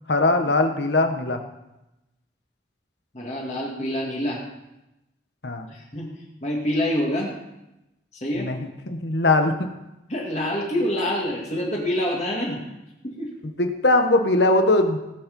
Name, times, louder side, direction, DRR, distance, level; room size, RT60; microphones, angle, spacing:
voice 1, 0.1-1.4 5.4-5.7 8.3-9.7 13.6-15.0, left 2 dB, 65° left, 6 dB, 1.3 m, -21 dB
voice 2, 3.1-4.4 5.7-6.1 6.4-7.3 8.1-8.5 10.1-12.6 13.0-13.3, left 1 dB, 40° left, -3 dB, 2.2 m, -26 dB
18.0 x 7.5 x 5.4 m, 0.94 s
head